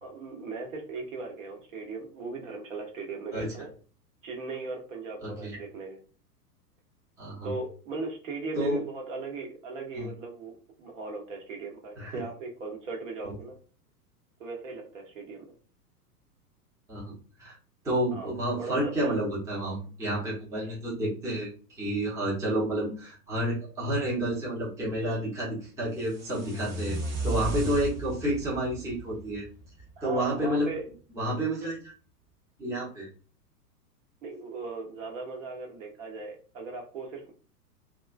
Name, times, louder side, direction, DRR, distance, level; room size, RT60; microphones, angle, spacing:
voice 1, 0.0-3.7 4.2-6.0 7.4-13.5 14.4-15.4 18.1-19.2 28.8-28.9 30.0-30.9 34.2-37.3, right 3 dB, 55° right, 1 dB, 1.0 m, -38 dB
voice 2, 5.2-5.6 7.2-7.5 8.5-8.8 9.9-10.1 12.0-12.2 13.2-13.3 16.9-17.5 17.8-27.0 27.2-29.5 30.0-30.7 31.1-31.9 32.6-33.1, right 1 dB, 5° right, -6 dB, 0.7 m, -30 dB
sound 1, 25.9-30.0, right 2 dB, 25° right, 1.3 m, -35 dB
2.3 x 2.2 x 2.3 m, 0.38 s
figure-of-eight pair, 100°, 47 cm